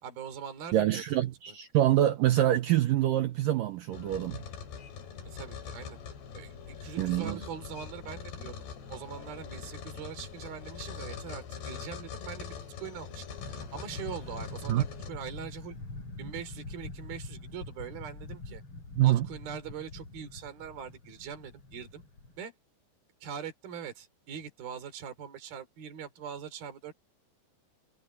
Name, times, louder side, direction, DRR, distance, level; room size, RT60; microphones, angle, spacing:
voice 1, 0.0-1.0 1.5-1.6 5.2-6.0 6.3-8.6 8.9-15.8 16.2-18.6 19.0-22.0 22.4-22.5 23.2-26.9, right 8 dB, 60° right, 5.7 m, -42 dB
voice 2, 0.7-4.4 7.0-7.4 14.7-14.8 19.0-19.3, right 13 dB, 90° right, 1.9 m, -25 dB
sound 1, 3.9-15.1, left 7 dB, 70° left, 5.5 m, -43 dB
sound 2, 13.4-22.4, left 2 dB, 30° left, 4.8 m, -44 dB
omnidirectional pair, 5.0 m